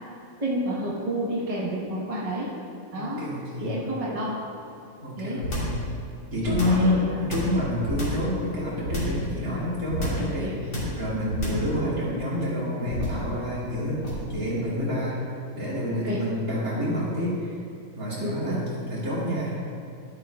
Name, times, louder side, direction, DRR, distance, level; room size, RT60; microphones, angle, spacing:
voice 1, 0.4-2.5 2.9-3.2 3.6-4.4 5.2-5.4 6.4-7.2 9.2-9.4 10.2-10.5 11.8-12.0 16.0-16.2 18.2-18.6, right 1 dB, 25° right, -6 dB, 1.2 m, -30 dB
voice 2, 2.9-3.8 5.0-5.8 6.3-14.0 14.3-15.2 15.5-17.6 17.9-18.6 18.9-19.5, left 1 dB, 60° right, -9 dB, 2.9 m, -28 dB
sound 1, 5.4-5.8 6.4-6.9 7.3-8.3 8.8-9.2 9.9-10.3 10.7-11.0 11.3-11.7 12.9-13.3 14.0-14.3, left 1 dB, 85° left, 3.0 m, -29 dB
12.5 x 8.0 x 2.4 m, 2.4 s
omnidirectional pair, 1.7 m